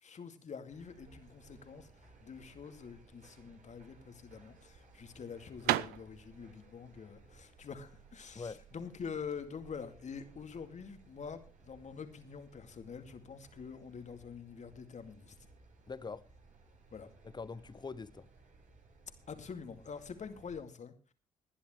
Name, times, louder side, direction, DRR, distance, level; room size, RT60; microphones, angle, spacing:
voice 1, 0.0-15.4 16.9-17.1 19.3-21.1, left 6 dB, 45° left, 2.3 m, -46 dB
sound 1, 0.7-20.6, right 4 dB, 50° right, 4.3 m, -60 dB
sound 2, 3.9-9.4, right 16 dB, 70° right, 0.6 m, -38 dB
voice 2, 15.9-16.3 17.2-18.3, left 4 dB, 25° left, 0.9 m, -43 dB
21.0 x 11.0 x 3.2 m
hypercardioid pair, 45°, 17 cm